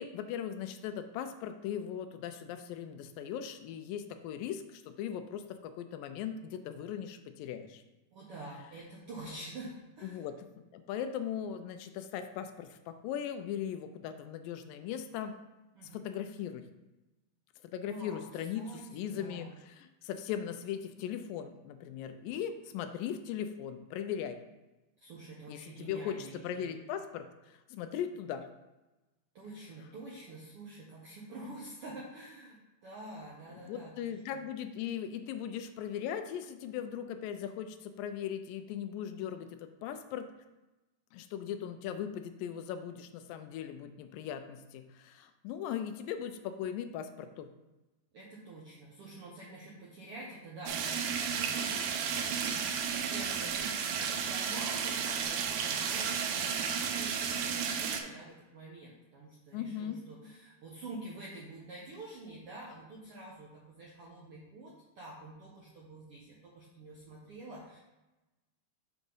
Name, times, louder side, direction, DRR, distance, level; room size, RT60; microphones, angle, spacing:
voice 1, 0.0-7.8 10.0-15.3 15.9-16.6 17.6-24.4 25.5-28.5 33.5-40.3 41.1-47.5 59.5-60.0, left 9 dB, 80° left, 8 dB, 2.2 m, -39 dB
voice 2, 8.1-10.2 15.7-16.0 17.8-19.5 25.0-26.8 29.3-34.4 48.1-67.8, right 2 dB, 70° right, -5 dB, 1.3 m, -47 dB
sound 1, 50.7-58.0, right 7 dB, 90° right, 2.5 m, -33 dB
7.2 x 3.8 x 5.4 m, 1.1 s
omnidirectional pair, 4.1 m